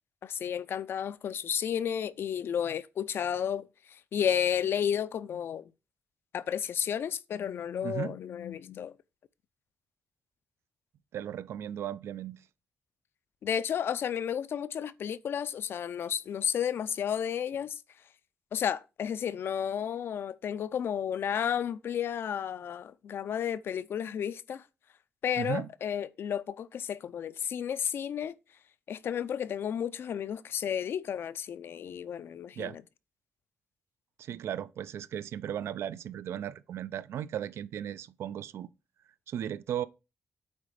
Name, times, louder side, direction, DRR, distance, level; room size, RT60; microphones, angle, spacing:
voice 1, 0.2-3.7 4.1-5.7 6.3-8.9 13.4-17.7 18.5-24.6 25.2-28.3 28.9-32.8, left 8 dB, 60° left, 0.4 m, -32 dB
voice 2, 7.8-8.2 11.1-12.4 25.4-25.7 32.6-32.8 34.2-38.7 39.3-39.9, right 10 dB, 75° right, 0.4 m, -36 dB
8.7 x 4.1 x 4.8 m
wide cardioid pair, 150°, 4 cm